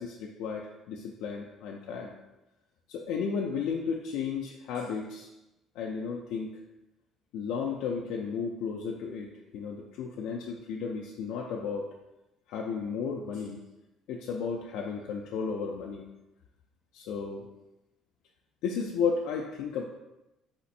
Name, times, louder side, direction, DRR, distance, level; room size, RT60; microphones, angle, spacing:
voice 1, 0.0-2.1 2.9-5.3 5.8-6.5 7.3-11.9 12.5-13.6 14.1-16.1 16.9-17.5 18.6-19.8, left 5 dB, 80° left, 0 dB, 0.4 m, -33 dB
4.3 x 4.1 x 2.5 m, 0.97 s
cardioid pair, 125°, 0 cm